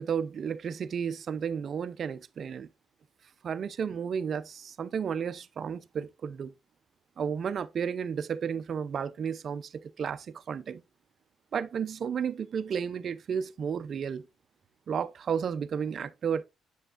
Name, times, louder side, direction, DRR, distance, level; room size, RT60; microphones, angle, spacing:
voice 1, 0.0-2.7 3.4-6.5 7.2-9.7 10.0-10.8 11.5-14.3 14.9-16.4, right 7 dB, 55° right, 0.5 m, -32 dB
7.9 x 7.1 x 2.5 m
cardioid pair, 90°, 0 cm